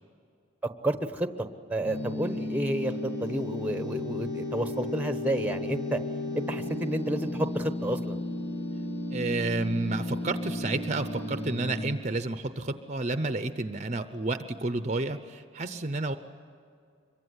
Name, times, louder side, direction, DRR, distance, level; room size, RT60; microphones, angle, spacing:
voice 1, 0.8-2.9 3.2-6.0 6.3-8.2, right 1 dB, 10° right, 8 dB, 1.1 m, -30 dB
sound 1, 1.8-11.9, left 1 dB, 60° left, 2.5 m, -34 dB
voice 2, 9.1-16.2, right 2 dB, 35° right, 10 dB, 0.8 m, -30 dB
26.0 x 23.5 x 9.7 m, 2.3 s
head